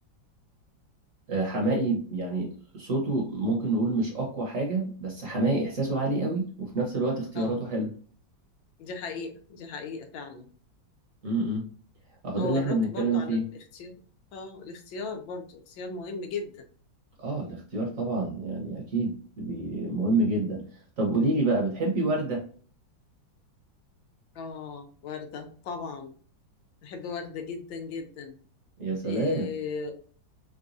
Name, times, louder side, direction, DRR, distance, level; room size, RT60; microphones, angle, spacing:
voice 1, 1.3-7.9 11.2-11.6 12.2-13.4 17.2-20.6 21.0-22.4 28.8-29.5, right 2 dB, 50° right, -1 dB, 1.1 m, -27 dB
voice 2, 8.8-10.5 12.3-13.9 14.3-16.6 24.3-26.1 26.8-28.4 29.0-30.2, left 5 dB, 80° left, 5 dB, 1.4 m, -37 dB
4.0 x 3.5 x 2.6 m, 0.43 s
omnidirectional pair, 2.1 m